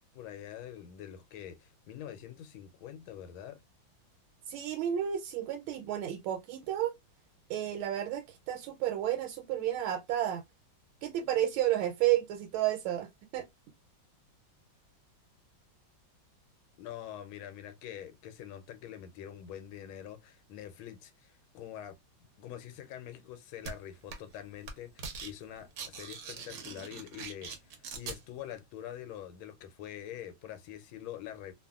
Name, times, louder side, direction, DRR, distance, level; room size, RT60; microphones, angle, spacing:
voice 1, 0.1-3.6 16.8-22.0 22.4-31.5, left 11 dB, 90° left, 1.4 m, -45 dB
voice 2, 4.5-6.9 7.5-10.4 11.0-13.5, right 12 dB, 85° right, 1.4 m, -31 dB
sound 1, 23.6-23.7 24.1-24.4 24.6-25.3 25.6-28.2, right 5 dB, 65° right, 0.9 m, -42 dB
2.9 x 2.5 x 2.3 m
omnidirectional pair, 2.2 m